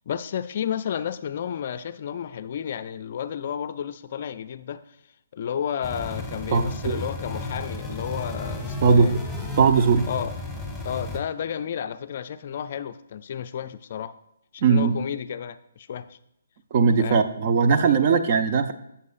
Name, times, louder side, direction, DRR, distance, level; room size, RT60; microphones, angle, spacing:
voice 1, 0.1-4.8 5.3-9.2 10.1-10.3 10.8-14.2 14.5-16.2 17.0-17.2, left 8 dB, 45° left, 11 dB, 0.4 m, -32 dB
sound 1, 5.8-11.2, left 2 dB, 5° right, 1.4 m, -33 dB
voice 2, 6.5-7.0 8.8-9.2 9.6-10.1 14.6-14.9 16.7-18.7, right 5 dB, 40° right, 9 dB, 0.7 m, -19 dB
14.5 x 7.0 x 2.5 m, 0.81 s
figure-of-eight pair, 135°, 0 cm